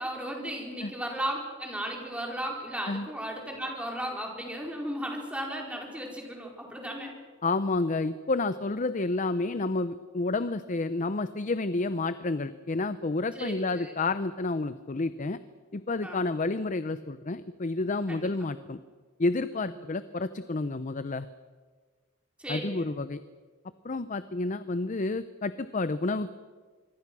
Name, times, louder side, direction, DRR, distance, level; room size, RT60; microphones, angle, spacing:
voice 1, 0.0-7.1 13.3-13.9 16.0-16.2 18.1-18.3 19.5-19.7 22.4-22.9, right 1 dB, 5° right, 0 dB, 4.6 m, -35 dB
voice 2, 7.4-15.4 15.7-18.8 19.2-21.3 22.5-23.2 23.8-26.3, left 3 dB, 40° left, 13 dB, 0.6 m, -30 dB
25.5 x 23.5 x 6.2 m, 1.5 s
head